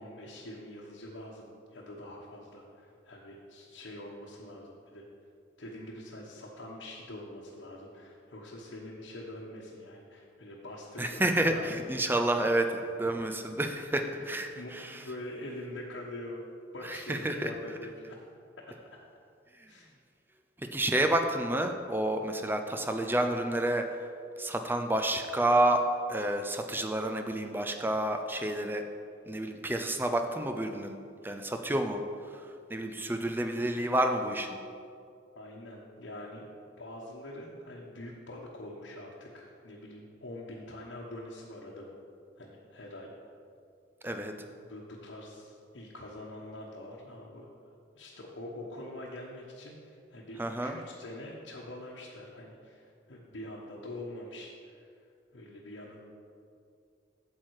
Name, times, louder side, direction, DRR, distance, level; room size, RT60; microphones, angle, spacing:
voice 1, 0.0-5.1 5.6-12.7 13.1-13.2 14.0-14.3 14.6-16.4 16.7-18.2 18.6-18.7 19.7-19.9 35.3-36.4 36.8-42.0 42.4-43.1 44.3-47.5 47.9-54.9 55.3-56.0, left 1 dB, 80° left, -4 dB, 1.1 m, -44 dB
voice 2, 11.0-12.7 13.0-15.0 16.8-17.5 20.7-24.1 24.4-25.8 26.1-28.8 29.3-31.0 31.2-32.0 32.7-34.6 44.0-44.3 50.4-50.8, right 1 dB, 10° right, 5 dB, 0.5 m, -29 dB
8.8 x 7.6 x 4.8 m, 2.4 s
head